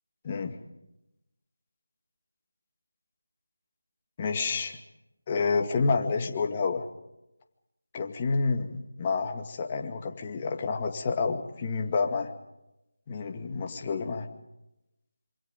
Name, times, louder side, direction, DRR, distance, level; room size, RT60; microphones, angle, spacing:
voice 1, 0.2-0.6 4.2-4.8 5.3-6.9 7.9-12.3 13.1-14.3, left 4 dB, 25° left, 4 dB, 2.2 m, -29 dB
27.0 x 26.0 x 5.4 m, 0.93 s
figure-of-eight pair, 165°, 0 cm